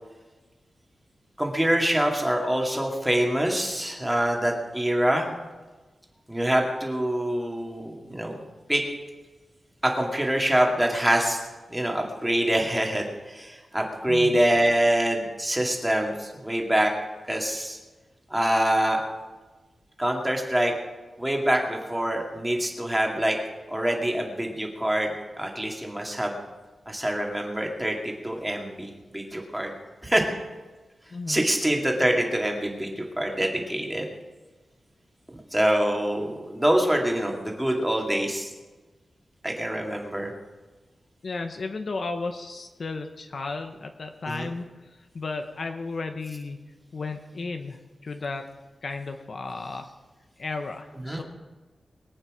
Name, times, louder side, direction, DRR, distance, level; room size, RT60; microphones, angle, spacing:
voice 1, 1.4-5.3 6.3-8.4 8.7-8.8 9.8-11.4 11.7-16.9 17.3-17.8 18.3-19.0 20.0-20.7 21.2-23.4 23.7-26.4 26.9-29.7 30.0-30.3 31.3-34.1 35.5-38.5 39.4-40.3 44.3-44.5 51.0-51.2, right 1 dB, 5° right, 1 dB, 2.2 m, -25 dB
voice 2, 14.1-14.4 31.1-31.5 41.2-44.6 45.1-46.6 46.9-48.5 48.8-49.9 50.4-51.2, left 3 dB, 50° left, 5 dB, 0.9 m, -34 dB
22.5 x 8.7 x 5.0 m, 1.2 s
wide cardioid pair, 160°, 0 cm